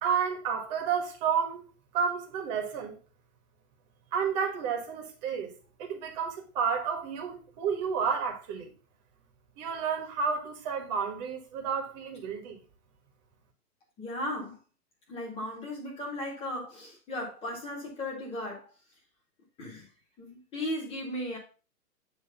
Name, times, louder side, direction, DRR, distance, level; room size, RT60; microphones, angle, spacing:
voice 1, 0.0-1.6 1.9-3.0 4.1-5.5 5.8-8.7 9.6-12.6, right 6 dB, 25° right, 1.6 m, -31 dB
voice 2, 14.0-14.6 15.1-18.7 19.6-19.9 20.2-21.4, left 1 dB, 10° left, 2.0 m, -36 dB
8.1 x 3.3 x 5.6 m
hypercardioid pair, 150°, 46 cm